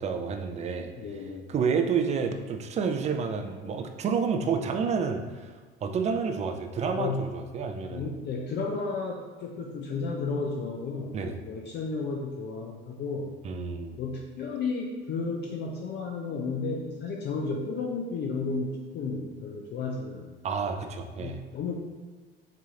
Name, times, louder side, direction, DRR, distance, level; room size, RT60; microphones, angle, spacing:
voice 1, 0.0-0.9 1.5-5.5 5.8-8.1 11.1-11.4 13.4-14.0 20.4-21.4, right 5 dB, 25° right, 5 dB, 0.4 m, -29 dB
voice 2, 1.0-1.5 4.4-4.7 7.0-7.2 7.8-13.3 14.0-20.8 21.2-21.7, left 4 dB, 35° left, 0 dB, 0.6 m, -33 dB
7.4 x 2.8 x 2.5 m, 1.4 s
figure-of-eight pair, 65°, 30 cm